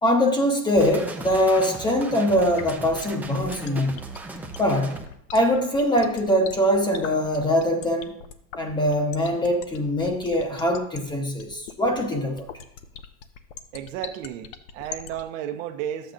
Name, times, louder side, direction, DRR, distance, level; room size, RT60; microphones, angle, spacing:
voice 1, 0.0-4.0 4.6-5.0 5.3-8.1 8.6-12.5, equal, 10° left, 0.8 m, -22 dB
sound 1, 0.8-5.1, right 3 dB, 5° right, 0.4 m, -37 dB
sound 2, 2.5-15.2, left 8 dB, 65° left, 0.8 m, -39 dB
voice 2, 13.7-16.1, right 10 dB, 70° right, 0.9 m, -33 dB
11.5 x 8.0 x 2.5 m
supercardioid pair, 140°, 39 cm